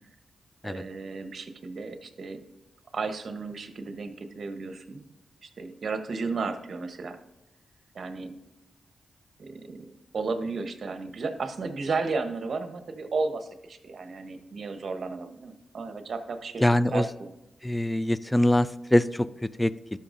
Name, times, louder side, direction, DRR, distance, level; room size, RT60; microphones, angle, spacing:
voice 1, 0.6-2.4 2.9-5.1 5.4-7.2 7.9-8.3 9.4-9.9 10.1-16.6 16.9-17.3, right 4 dB, 60° right, 8 dB, 0.9 m, -33 dB
voice 2, 16.6-17.1 17.6-20.0, left 1 dB, 15° left, 16 dB, 0.3 m, -24 dB
12.5 x 5.7 x 2.6 m, 0.92 s
cardioid pair, 60°, 0 cm